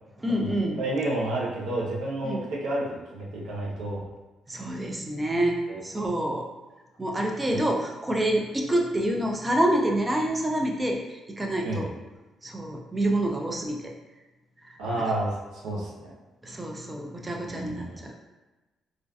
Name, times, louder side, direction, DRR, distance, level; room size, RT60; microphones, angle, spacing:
voice 1, 0.2-0.8 2.2-2.5 4.5-6.5 7.0-11.0 11.4-11.9 12.4-13.8 14.6-15.0 16.4-18.1, right 1 dB, 20° right, 1 dB, 0.4 m, -27 dB
voice 2, 0.8-2.8 3.1-4.0 5.7-5.8 7.5-7.6 11.6-11.9 14.8-15.4 15.6-16.1 17.5-18.0, right 1 dB, 85° right, -4 dB, 0.7 m, -30 dB
2.4 x 2.3 x 2.2 m, 1.1 s
cardioid pair, 90°, 0 cm